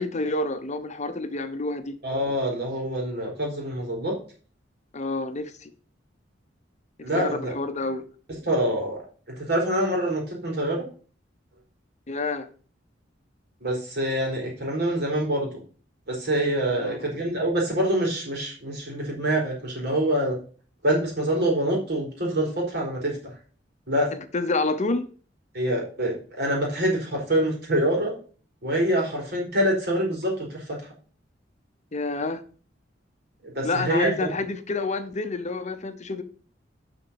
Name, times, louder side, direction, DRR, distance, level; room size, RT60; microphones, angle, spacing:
voice 1, 0.0-2.0 4.9-5.7 7.1-8.0 12.1-12.5 16.8-17.0 24.1-25.1 31.9-32.4 33.6-36.2, left 3 dB, 40° left, 0.8 m, -28 dB
voice 2, 2.0-4.1 7.0-7.5 8.3-9.0 9.4-10.8 13.6-15.5 16.1-20.3 20.8-23.1 23.9-24.1 25.5-28.1 28.6-30.6 33.4-34.3, right 1 dB, 60° right, 4.5 m, -25 dB
7.3 x 5.9 x 7.0 m
head